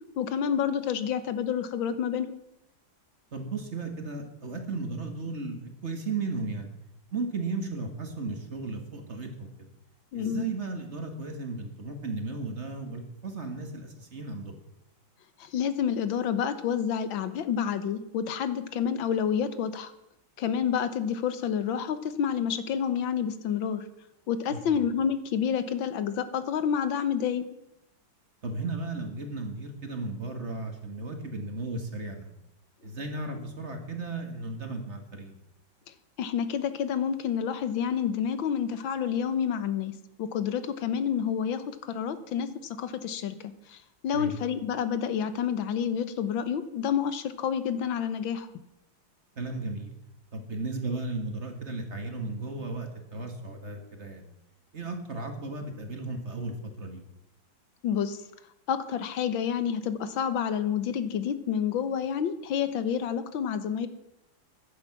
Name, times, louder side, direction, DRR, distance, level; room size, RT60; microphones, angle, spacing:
voice 1, 0.2-2.3 10.1-10.5 15.4-19.9 20.4-23.9 24.3-27.5 36.2-42.5 42.8-43.4 43.7-48.5 57.8-58.2 58.7-63.9, left 8 dB, 80° left, 12 dB, 1.7 m, -29 dB
voice 2, 3.3-6.7 7.1-9.7 10.1-14.6 24.5-24.8 28.4-32.3 32.8-35.3 44.1-44.4 49.4-49.9 50.3-54.3 54.7-57.0, right 3 dB, 35° right, 5 dB, 1.8 m, -35 dB
14.5 x 10.5 x 5.9 m, 0.86 s
omnidirectional pair, 2.1 m